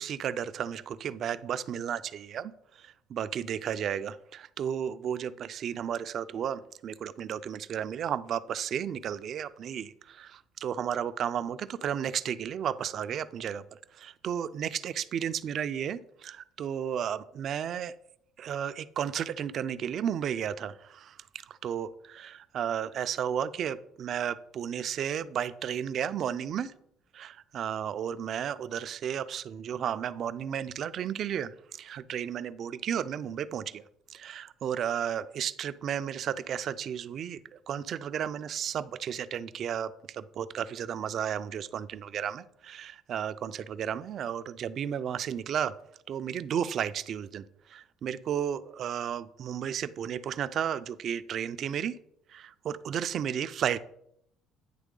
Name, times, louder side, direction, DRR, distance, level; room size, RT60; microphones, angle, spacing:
voice 1, 0.0-2.5 2.8-13.6 13.9-17.9 18.4-21.2 21.5-26.7 27.1-33.8 34.1-37.4 37.7-45.7 46.1-47.4 47.7-52.0 52.3-53.8, right 9 dB, 40° right, 13 dB, 0.3 m, -33 dB
9.1 x 3.4 x 3.7 m, 0.72 s
cardioid pair, 155°, 0 cm